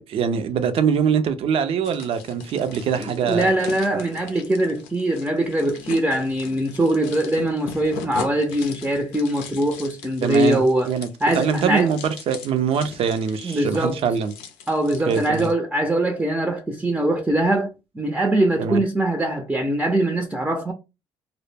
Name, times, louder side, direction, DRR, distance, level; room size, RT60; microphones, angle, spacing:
voice 1, 0.0-3.5 3.9-4.0 10.2-10.6 10.9-11.1 11.3-14.3 15.1-15.5 18.6-18.8, right 7 dB, 60° right, 0.5 m, -23 dB
sound 1, 1.8-15.5, left 6 dB, 90° left, 0.5 m, -40 dB
voice 2, 3.0-11.0 11.2-11.9 13.4-14.0 14.7-20.7, right 1 dB, 10° right, 0.5 m, -22 dB
2.0 x 2.0 x 3.2 m
supercardioid pair, 70°, 11 cm